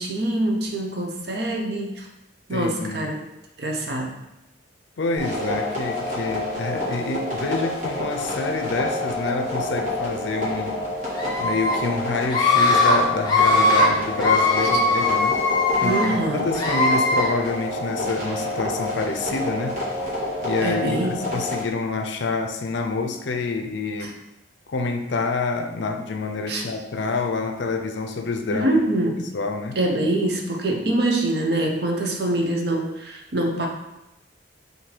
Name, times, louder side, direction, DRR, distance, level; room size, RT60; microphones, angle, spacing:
voice 1, 0.0-2.1 2.5-3.2 3.6-4.2 15.8-16.5 20.6-21.2 24.0-24.1 26.5-26.6 28.5-29.2 29.8-33.7, right 1 dB, 55° right, 1 dB, 0.6 m, -24 dB
voice 2, 2.5-3.1 5.0-10.8 11.4-15.4 15.8-16.0 16.3-19.8 20.4-24.1 24.7-28.7 29.3-29.8, left 3 dB, 70° left, 5 dB, 0.5 m, -27 dB
sound 1, 5.2-21.6, left 1 dB, 40° right, 1.4 m, -28 dB
Screaming, 11.2-11.7 12.3-12.9 13.2-13.9 14.2-16.1 16.5-17.3, left 3 dB, 20° left, 0.7 m, -20 dB
4.0 x 2.7 x 4.3 m, 0.93 s
head